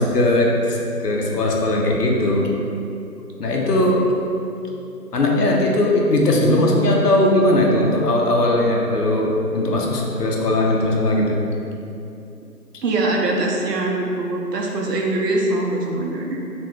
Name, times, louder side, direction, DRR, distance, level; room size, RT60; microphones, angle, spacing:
voice 1, 0.0-2.5 3.4-4.0 5.1-11.4, left 1 dB, 75° left, -1 dB, 0.6 m, -19 dB
voice 2, 12.8-16.4, right 2 dB, 80° right, -1 dB, 0.6 m, -22 dB
2.4 x 2.1 x 3.4 m, 2.7 s
figure-of-eight pair, 175°, 48 cm